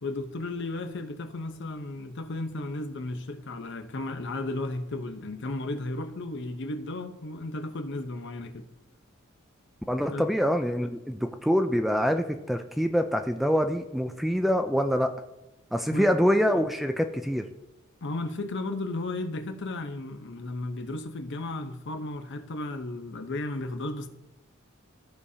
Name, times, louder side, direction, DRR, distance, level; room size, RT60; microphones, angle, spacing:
voice 1, 0.0-8.7 10.1-10.2 15.9-16.1 18.0-24.1, left 2 dB, 60° left, 0.8 m, -34 dB
voice 2, 9.9-15.1 15.7-17.5, equal, ahead, 0.3 m, -25 dB
13.5 x 4.9 x 2.8 m
head